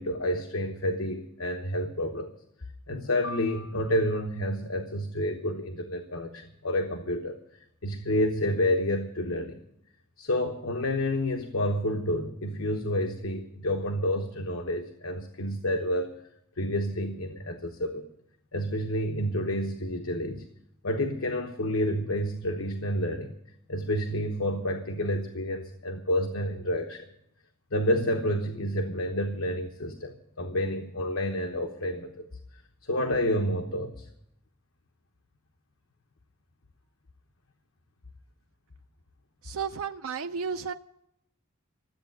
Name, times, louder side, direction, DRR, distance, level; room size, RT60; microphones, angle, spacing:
voice 1, 0.0-2.3 2.9-7.4 7.8-9.6 10.2-16.1 16.6-18.1 18.5-20.5 20.8-23.3 23.7-27.1 27.7-32.2 32.8-34.1, left 1 dB, 70° left, 1.0 m, -29 dB
voice 2, 39.4-40.7, right 6 dB, 80° right, 0.4 m, -33 dB
13.5 x 8.2 x 9.0 m
head